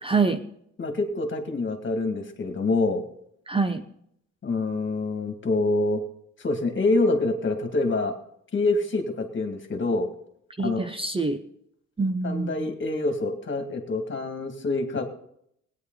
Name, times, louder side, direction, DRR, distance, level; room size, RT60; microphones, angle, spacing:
voice 1, 0.0-0.4 3.5-3.8 10.6-11.4 12.0-12.7, right 4 dB, 20° right, 8 dB, 0.9 m, -25 dB
voice 2, 0.8-3.0 4.4-6.0 6.4-8.2 8.5-10.1 10.6-10.8 12.2-15.0, left 2 dB, 40° left, 5 dB, 2.1 m, -26 dB
17.0 x 9.8 x 4.0 m, 0.71 s
cardioid pair, 90°, 30 cm